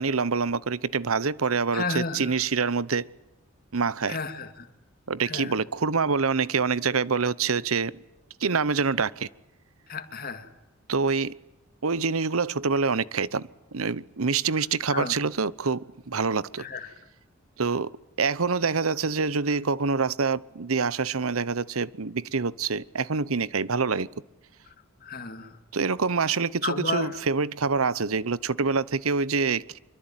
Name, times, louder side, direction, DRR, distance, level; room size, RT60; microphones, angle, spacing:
voice 1, 0.0-3.1 3.7-4.2 5.1-8.0 8.4-9.3 10.9-11.3 11.8-16.6 17.6-17.9 18.2-24.1 25.7-29.8, right 5 dB, 85° right, 0.9 m, -26 dB
voice 2, 1.7-2.3 4.1-4.7 5.3-5.5 9.9-10.5 14.9-15.1 16.6-16.9 25.0-25.6 26.6-27.2, left 4 dB, 45° left, 2.6 m, -32 dB
25.5 x 24.0 x 9.1 m
head